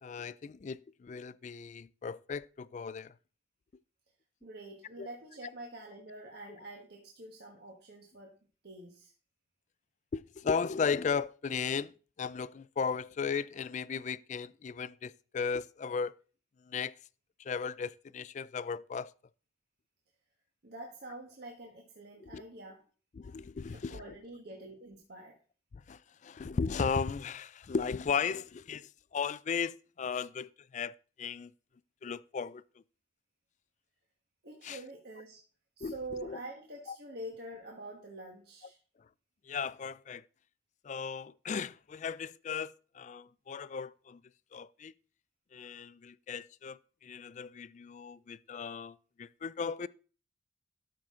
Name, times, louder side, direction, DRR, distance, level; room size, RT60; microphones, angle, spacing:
voice 1, 0.0-3.1 5.0-5.1 10.1-11.9 12.2-16.2 16.7-16.9 17.4-19.1 22.2-22.4 23.1-24.1 25.9-31.5 32.0-32.6 34.6-34.8 35.8-35.9 36.2-36.4 36.9-37.0 39.5-40.2 40.8-44.2 44.5-44.9 45.5-49.9, left 6 dB, 40° left, 0.3 m, -36 dB
voice 2, 4.4-8.4 8.6-9.1 20.6-22.8 23.7-25.4 34.4-35.4 35.8-38.8, right 2 dB, 55° right, 1.4 m, -46 dB
12.5 x 5.8 x 3.7 m
head